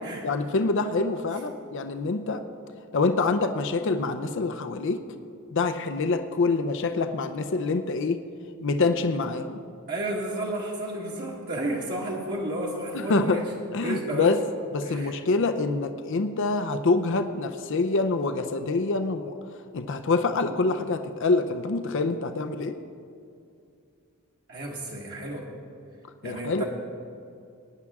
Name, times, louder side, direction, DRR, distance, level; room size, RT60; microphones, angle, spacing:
voice 1, 0.2-2.4 2.9-5.0 5.5-8.2 8.6-9.6 12.9-13.4 13.7-14.4 14.7-19.3 19.7-22.8 26.2-26.6, left 3 dB, 60° left, 8 dB, 0.6 m, -26 dB
voice 2, 9.9-13.5 13.8-14.4 14.8-15.2 24.5-25.5 26.2-26.6, right 1 dB, 50° right, -4 dB, 1.6 m, -32 dB
19.0 x 9.9 x 3.6 m, 2.5 s
head